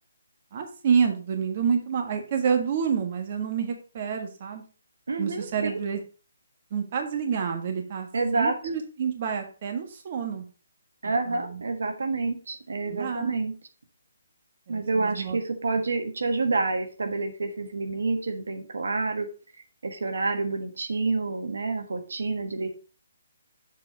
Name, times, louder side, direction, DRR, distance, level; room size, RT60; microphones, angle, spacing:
voice 1, 0.5-4.6 5.2-6.0 6.7-8.1 8.3-10.4 11.0-11.6 12.8-13.4 14.7-15.4, right 6 dB, 40° right, 4 dB, 1.5 m, -28 dB
voice 2, 5.1-5.8 8.1-8.5 11.0-13.5 14.7-19.3 19.8-22.7, right 3 dB, 80° right, 6 dB, 1.4 m, -28 dB
7.1 x 4.7 x 5.2 m, 0.36 s
hypercardioid pair, 155°, 0 cm